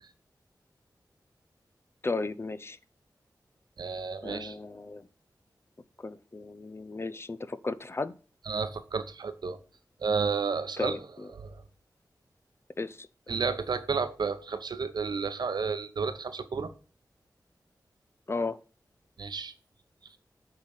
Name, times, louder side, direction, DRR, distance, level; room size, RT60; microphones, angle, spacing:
voice 1, 2.0-2.8 4.2-5.1 6.0-8.1 10.8-11.3 12.8-13.1 18.3-18.6, left 3 dB, 35° left, 0.6 m, -34 dB
voice 2, 3.8-4.5 8.5-9.6 10.0-11.0 11.4-11.6 13.3-16.7 19.2-19.5, right 5 dB, 80° right, 0.9 m, -31 dB
8.7 x 4.0 x 6.4 m
wide cardioid pair, 80°, 7 cm